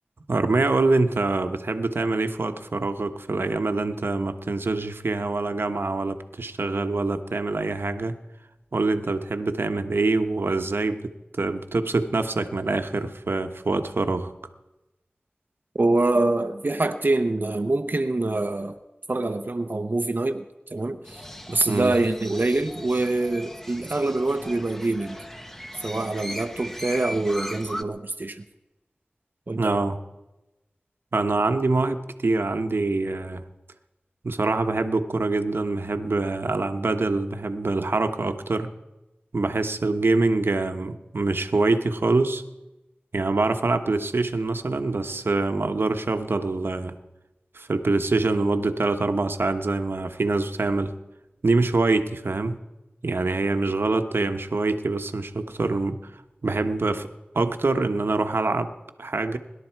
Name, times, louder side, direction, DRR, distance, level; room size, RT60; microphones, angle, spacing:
voice 1, 0.3-8.2 8.7-14.3 21.7-21.9 29.6-30.0 31.1-33.4 34.2-38.7 39.3-42.4 43.1-46.9 47.5-50.9 51.4-52.6 53.0-56.1 56.4-57.1 57.3-58.7 59.0-59.4, right 3 dB, 75° right, 8 dB, 1.1 m, -25 dB
voice 2, 15.7-18.8 19.1-20.4 20.7-25.2 25.8-28.4 29.5-29.8, right 2 dB, 55° right, 7 dB, 0.8 m, -25 dB
Crow, 21.1-27.8, equal, 10° left, 1.2 m, -38 dB
25.0 x 12.0 x 4.6 m, 1.0 s
wide cardioid pair, 45°, 4 cm